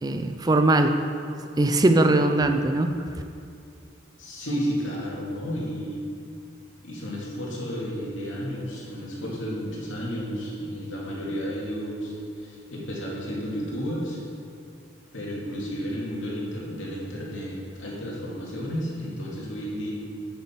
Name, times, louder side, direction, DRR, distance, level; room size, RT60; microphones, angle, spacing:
voice 1, 0.0-1.0 1.6-3.0, right 2 dB, 20° right, 7 dB, 0.4 m, -20 dB
voice 2, 4.2-6.0 6.8-14.2 15.1-19.9, equal, 90° left, -4 dB, 2.4 m, -32 dB
11.0 x 6.9 x 4.5 m, 2.4 s
head